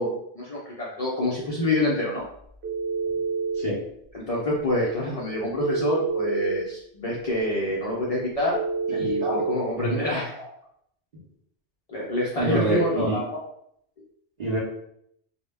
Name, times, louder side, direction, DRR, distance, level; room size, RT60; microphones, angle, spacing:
voice 1, 0.0-2.2 4.1-8.6 8.9-10.3 11.9-13.4, left 1 dB, 70° left, -5 dB, 0.3 m, -27 dB
Telephone, 2.6-3.7 5.6-6.6 8.5-9.6, right 5 dB, 70° right, 0.9 m, -27 dB
voice 2, 8.9-9.4 9.8-10.5 12.4-13.2 14.4-14.6, right 1 dB, 50° right, -5 dB, 0.5 m, -27 dB
2.0 x 2.0 x 3.3 m, 0.71 s
omnidirectional pair, 1.2 m